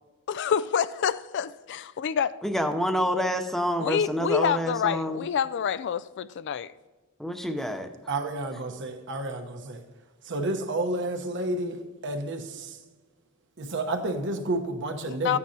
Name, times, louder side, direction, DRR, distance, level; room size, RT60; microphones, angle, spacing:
voice 1, 0.3-2.3 3.8-6.7 15.1-15.4, left 7 dB, 55° left, 0.3 m, -27 dB
voice 2, 2.4-5.2 7.2-7.9, equal, ahead, 0.6 m, -27 dB
voice 3, 8.1-9.8 10.2-12.8 13.6-15.4, right 2 dB, 60° right, 1.1 m, -30 dB
14.5 x 9.5 x 2.8 m
head